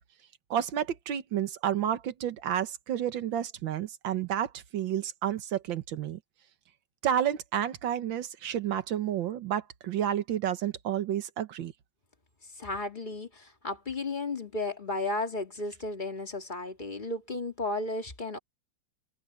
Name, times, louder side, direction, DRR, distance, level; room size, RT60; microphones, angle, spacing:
voice 1, 0.5-6.2 7.0-11.7, right 10 dB, 80° right, 1.9 m, -30 dB
voice 2, 12.5-18.4, left 2 dB, 25° left, 2.3 m, -34 dB
omnidirectional pair, 2.0 m